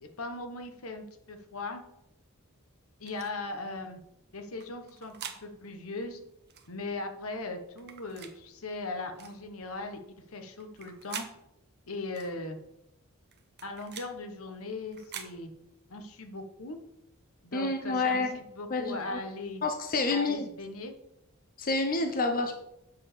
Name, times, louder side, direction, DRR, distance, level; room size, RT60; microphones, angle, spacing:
voice 1, 0.0-1.8 3.0-4.0 4.3-5.1 5.4-6.2 6.7-11.2 11.9-12.6 13.6-15.5 15.9-16.8 17.4-19.6 20.1-20.9, left 2 dB, 75° left, 6 dB, 1.3 m, -39 dB
sound 1, 3.0-3.3 4.6-5.4 6.5-6.7 7.8-8.3 9.2-9.4 10.6-11.3 12.1-12.3 13.3-14.1 14.9-15.3, right 8 dB, 50° right, 1.1 m, -44 dB
voice 2, 17.5-18.3 18.7-19.2 19.6-20.5 21.6-22.6, left 3 dB, 40° left, 5 dB, 0.8 m, -28 dB
8.4 x 5.0 x 6.9 m, 0.82 s
head